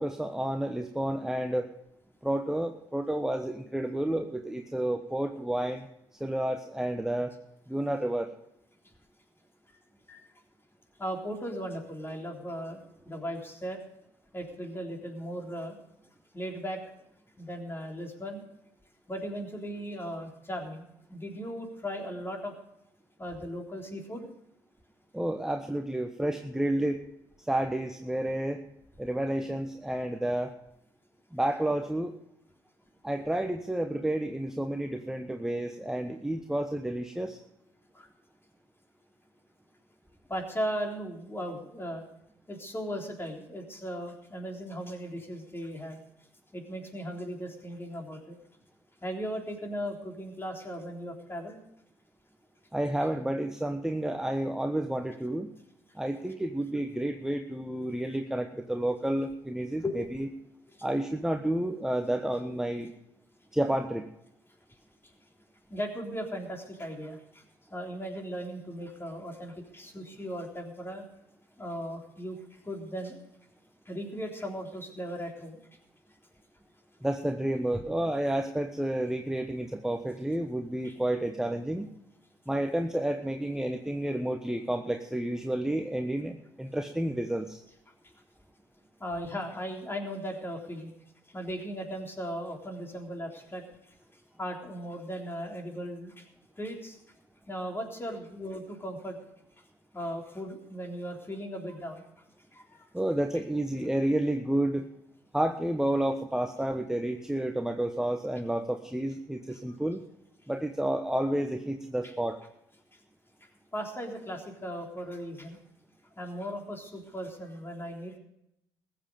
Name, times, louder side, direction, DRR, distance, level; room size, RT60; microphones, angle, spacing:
voice 1, 0.0-1.7 2.2-5.9 6.2-7.3 7.7-8.3 25.1-27.0 27.4-28.6 29.0-30.5 31.3-32.2 33.0-37.4 52.7-55.5 55.9-60.3 60.8-62.9 63.5-64.1 77.0-81.9 82.5-87.6 102.9-104.9 105.3-110.0 110.5-112.4, right 1 dB, 5° right, 6 dB, 1.1 m, -30 dB
voice 2, 11.0-13.8 14.3-15.8 16.3-16.8 17.4-18.4 19.1-22.5 23.2-24.3 37.9-38.1 40.3-42.0 42.5-46.0 46.5-48.4 49.0-51.6 59.8-60.0 65.7-67.4 67.7-71.0 71.6-73.2 73.9-75.6 80.8-80.9 89.0-90.9 91.3-93.9 94.4-96.3 96.6-97.0 97.5-99.2 99.9-102.1 102.5-102.9 109.7-109.8 112.0-112.1 113.7-115.6 116.2-118.2, equal, 20° left, 2 dB, 3.6 m, -37 dB
20.5 x 8.0 x 5.1 m, 0.80 s
figure-of-eight pair, 50°, 12 cm